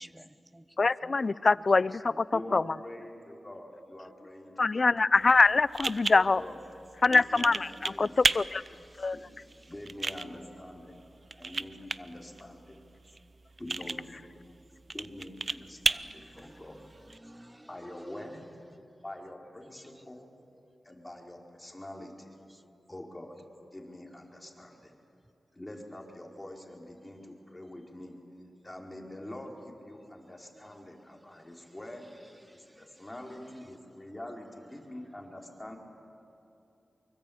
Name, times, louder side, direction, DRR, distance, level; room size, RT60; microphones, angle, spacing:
voice 1, 0.0-1.2 2.1-2.2 8.7-9.1 16.0-18.4 22.5-22.6 31.6-31.7 32.4-33.0, right 1 dB, 15° right, 13 dB, 1.0 m, -53 dB
voice 2, 0.8-2.2 2.5-2.6 4.6-6.4 7.0-8.1 8.3-8.6 9.0-9.2, left 3 dB, 50° left, 20 dB, 0.5 m, -24 dB
voice 3, 2.3-4.9 6.1-6.6 7.1-7.6 7.8-8.2 9.1-9.2 9.7-11.0 11.4-12.8 13.6-14.2 14.9-16.8 17.7-18.5 19.0-20.3 20.8-22.3 22.9-23.3 23.7-24.9 25.5-28.2 28.6-32.1 32.8-35.8, left 1 dB, 20° left, 1 dB, 4.4 m, -45 dB
sound 1, 5.1-17.2, right 3 dB, 45° right, 0.6 m, -35 dB
24.5 x 23.0 x 8.7 m, 2.9 s
cardioid pair, 45°, 0 cm